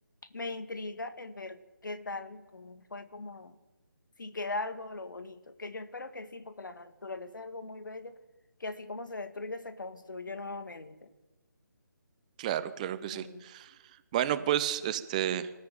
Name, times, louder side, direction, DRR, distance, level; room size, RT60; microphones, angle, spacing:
voice 1, 0.3-3.6 4.2-8.2 8.6-11.1 13.1-13.5 14.4-14.5, left 3 dB, 65° left, 10 dB, 2.0 m, -40 dB
voice 2, 12.4-13.7 14.1-15.5, right 11 dB, 20° right, 13 dB, 0.9 m, -31 dB
26.0 x 14.0 x 8.9 m, 1.2 s
figure-of-eight pair, 150°, 11 cm